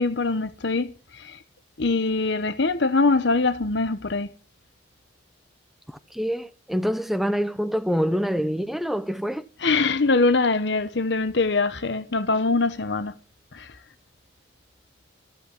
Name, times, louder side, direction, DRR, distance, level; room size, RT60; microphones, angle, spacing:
voice 1, 0.0-1.4 1.8-4.3 9.6-13.1 13.5-13.7, left 3 dB, 65° left, 0.9 m, -23 dB
voice 2, 5.9-9.4, equal, ahead, 0.7 m, -26 dB
14.0 x 8.0 x 8.3 m
head